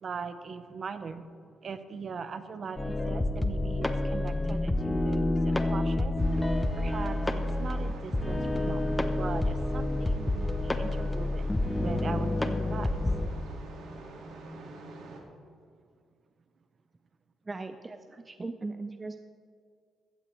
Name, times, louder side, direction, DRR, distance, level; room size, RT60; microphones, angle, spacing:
voice 1, 0.0-1.3 1.6-6.2 6.8-11.5 11.8-12.9, right 5 dB, 45° right, 11 dB, 0.9 m, -40 dB
sound 1, 2.8-13.3, left 2 dB, 15° left, 0.8 m, -28 dB
sound 2, 6.2-15.2, right 2 dB, 80° right, 2.1 m, -45 dB
voice 2, 17.5-19.2, right 3 dB, 25° right, 8 dB, 0.5 m, -39 dB
15.5 x 14.5 x 3.3 m, 2.2 s
cardioid pair, 90°, 0 cm